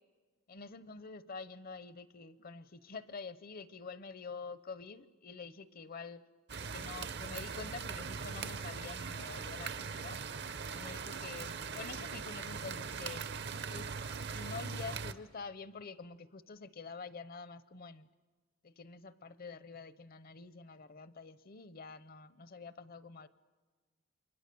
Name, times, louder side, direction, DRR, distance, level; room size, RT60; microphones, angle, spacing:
voice 1, 0.5-6.2 6.6-10.2 10.7-13.2 13.7-13.9 14.3-18.1 18.6-23.3, left 4 dB, 50° left, 14 dB, 0.8 m, -47 dB
sound 1, 6.5-15.1, right 5 dB, 60° right, 0.8 m, -41 dB
28.5 x 23.0 x 6.9 m, 1.3 s
head